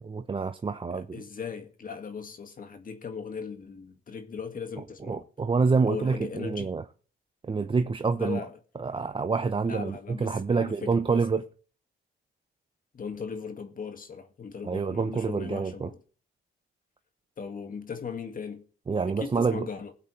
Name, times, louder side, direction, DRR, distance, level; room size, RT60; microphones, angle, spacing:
voice 1, 0.0-1.2 5.1-6.8 7.5-8.4 8.8-11.4 14.6-15.9 18.9-19.7, right 4 dB, 25° right, 0.8 m, -27 dB
voice 2, 0.9-5.3 5.8-6.7 8.2-8.6 9.7-11.3 12.9-16.0 17.4-18.7 19.1-19.9, left 6 dB, 45° left, 2.0 m, -38 dB
20.5 x 8.1 x 3.2 m
cardioid pair, 90°, 20 cm